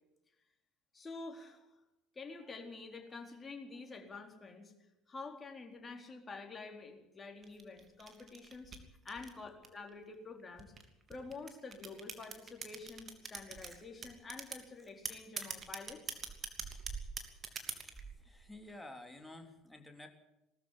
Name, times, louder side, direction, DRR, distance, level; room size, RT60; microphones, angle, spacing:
voice 1, 0.9-1.7 2.1-4.7 5.1-8.7 9.0-10.7 11.1-16.2, left 3 dB, 25° left, 3 dB, 4.2 m, -48 dB
sound 1, 7.4-9.9 10.6-13.7 14.0-14.6 15.1-18.0, right 6 dB, 35° right, 3.0 m, -43 dB
Chewing mastication, 13.3-13.8 14.4-14.5 14.8-15.0 15.4-15.5 15.8-17.3 17.7-18.9 19.3-19.4, right 5 dB, 20° right, 4.6 m, -49 dB
voice 2, 18.2-20.1, left 1 dB, 5° left, 4 dB, 3.6 m, -51 dB
19.0 x 13.5 x 9.9 m, 0.93 s
hypercardioid pair, 65°, 0 cm